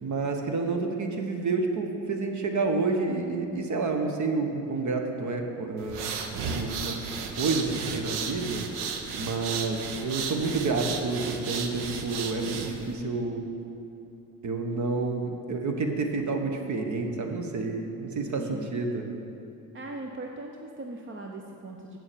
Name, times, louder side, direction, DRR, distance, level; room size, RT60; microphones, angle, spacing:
voice 1, 0.0-7.1 7.4-8.8 9.2-13.4 14.4-19.1, right 3 dB, 45° right, 4 dB, 1.4 m, -29 dB
sound 1, 5.8-12.9, right 5 dB, 75° right, 1.0 m, -34 dB
voice 2, 18.4-18.7 19.7-22.0, right 2 dB, 30° right, 2 dB, 0.8 m, -39 dB
7.9 x 7.0 x 6.9 m, 2.7 s
supercardioid pair, 70°, 40 cm